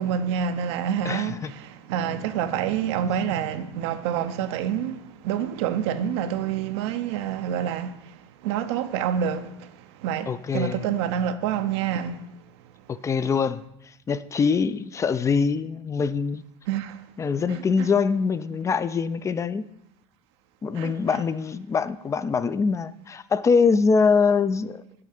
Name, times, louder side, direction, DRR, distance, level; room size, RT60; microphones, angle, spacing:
voice 1, 0.0-12.3 16.7-17.0 17.5-17.9 20.7-21.2, right 8 dB, 80° right, 0.6 m, -28 dB
voice 2, 1.1-1.5 10.3-10.8 12.9-16.4 17.2-19.7 20.6-24.8, left 5 dB, 20° left, 0.4 m, -24 dB
8.5 x 3.3 x 6.5 m
supercardioid pair, 95°, 14 cm